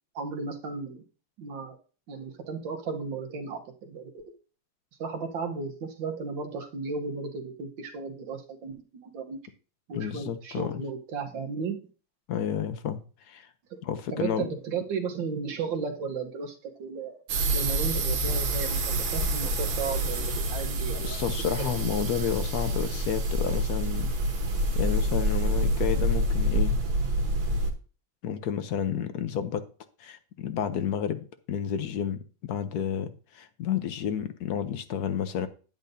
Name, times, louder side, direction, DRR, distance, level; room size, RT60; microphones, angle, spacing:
voice 1, 0.2-1.0 1.4-1.8 2.1-4.2 5.0-9.4 9.9-11.8 13.7-13.8 14.1-17.2 17.5-21.2 21.6-21.7, right 5 dB, 70° right, 1.8 m, -34 dB
voice 2, 9.9-10.8 12.3-13.5 13.8-14.5 21.0-24.1 24.7-26.8 28.2-29.6 30.0-35.5, left 8 dB, 60° left, 1.1 m, -31 dB
sound 1, 17.3-27.7, right 1 dB, 90° right, 2.1 m, -27 dB
10.0 x 9.0 x 2.7 m
omnidirectional pair, 2.2 m